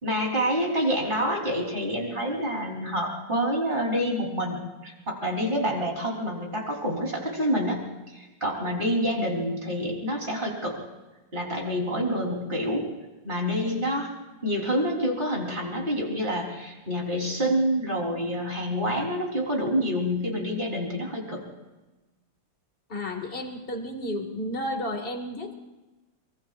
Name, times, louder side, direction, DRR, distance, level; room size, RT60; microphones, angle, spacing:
voice 1, 0.0-4.6 4.8-7.8 8.1-10.8 11.3-12.9 13.2-14.1 14.4-21.4, equal, 20° right, -1 dB, 3.8 m, -27 dB
voice 2, 22.9-25.5, left 1 dB, 25° left, 3 dB, 2.0 m, -32 dB
24.0 x 24.0 x 2.5 m, 1.1 s
omnidirectional pair, 2.4 m